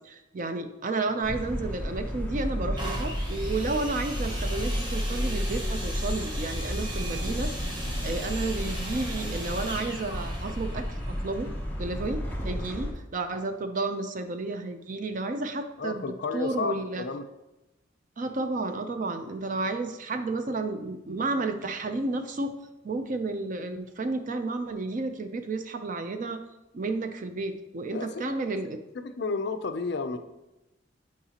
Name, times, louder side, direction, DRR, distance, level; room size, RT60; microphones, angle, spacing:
voice 1, 0.0-11.0 11.2-11.5 11.8-17.1 18.2-22.6 22.8-26.4 26.7-28.8, right 3 dB, 40° right, 8 dB, 0.4 m, -32 dB
sound 1, 1.2-12.9, equal, 10° left, 0.7 m, -32 dB
sound 2, 2.8-12.5 13.2-13.3, right 1 dB, 20° right, 0.8 m, -39 dB
voice 2, 15.8-17.3 27.9-28.6 28.9-30.2, left 4 dB, 55° left, 8 dB, 0.4 m, -32 dB
8.4 x 4.8 x 2.9 m, 0.99 s
head